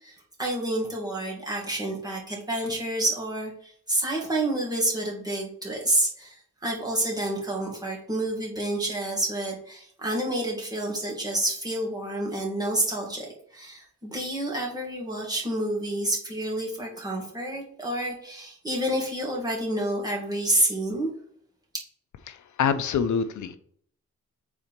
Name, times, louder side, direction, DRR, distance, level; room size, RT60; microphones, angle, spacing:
voice 1, 0.0-21.1, right 1 dB, 15° right, -3 dB, 2.0 m, -29 dB
voice 2, 22.3-23.6, left 7 dB, 75° left, 10 dB, 0.6 m, -26 dB
4.9 x 4.1 x 5.8 m, 0.62 s
wide cardioid pair, 125°, 30 cm